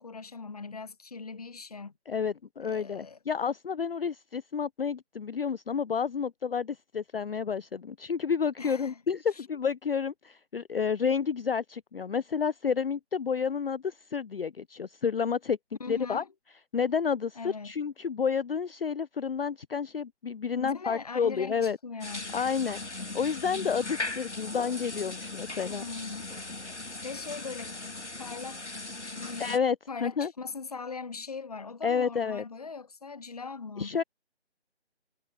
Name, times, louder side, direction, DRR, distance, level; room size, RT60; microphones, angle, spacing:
voice 1, 0.0-1.9 2.6-3.2 8.6-9.0 9.3-9.5 15.8-16.3 17.4-17.7 20.5-22.3 25.7-26.3 27.0-28.8 29.1-29.6 29.9-34.0, left 4 dB, 35° left, 0.8 m, -40 dB
voice 2, 2.1-15.6 15.9-16.2 16.7-21.8 22.3-25.8 29.4-29.8 30.0-30.3 31.8-32.4 33.8-34.0, left 6 dB, 55° left, 0.5 m, -30 dB
sound 1, 22.0-29.6, left 2 dB, 85° left, 1.9 m, -38 dB
figure-of-eight pair, 155°, 34 cm